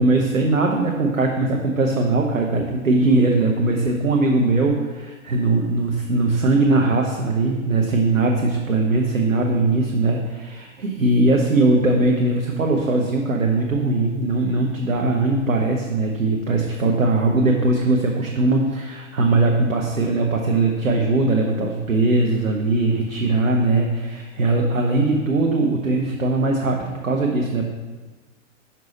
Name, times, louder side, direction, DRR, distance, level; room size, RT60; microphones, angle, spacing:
voice 1, 0.0-27.7, right 2 dB, 90° right, 1 dB, 0.9 m, -20 dB
6.1 x 5.5 x 4.1 m, 1.3 s
hypercardioid pair, 110°, 40 cm